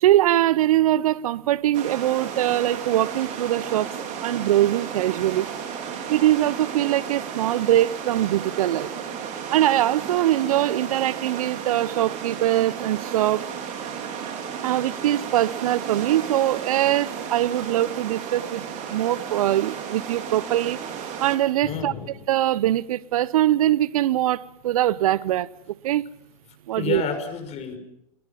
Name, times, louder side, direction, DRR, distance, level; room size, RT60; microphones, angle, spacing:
voice 1, 0.0-3.9 4.2-5.5 6.1-8.9 9.5-13.4 14.6-20.8 21.2-21.9 22.3-26.0 26.7-27.0, right 13 dB, 65° right, 0.9 m, -22 dB
sound 1, 1.7-21.4, right 7 dB, 40° right, 4.9 m, -33 dB
voice 2, 21.6-22.2 26.7-27.8, left 6 dB, 35° left, 5.8 m, -30 dB
29.5 x 22.0 x 5.8 m
hypercardioid pair, 95°, 20 cm